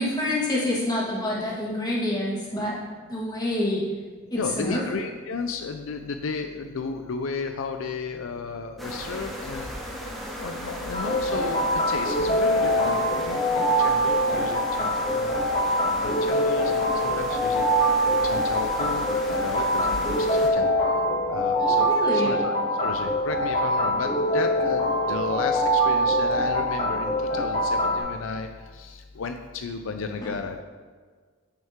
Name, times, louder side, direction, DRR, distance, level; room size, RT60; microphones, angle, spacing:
voice 1, 0.0-2.8 3.1-3.9 4.3-4.8 21.6-22.4 30.2-30.3, left 1 dB, 20° left, -5 dB, 1.8 m, -27 dB
voice 2, 4.4-9.7 10.4-15.4 16.0-17.6 18.0-20.7 21.3-22.5 22.8-28.5 28.7-30.6, left 4 dB, 75° left, 6 dB, 0.5 m, -33 dB
sound 1, 8.8-20.5, equal, ahead, 1.0 m, -36 dB
sound 2, 10.9-28.0, equal, 40° left, 2.4 m, -24 dB
9.0 x 5.3 x 3.7 m, 1.5 s
head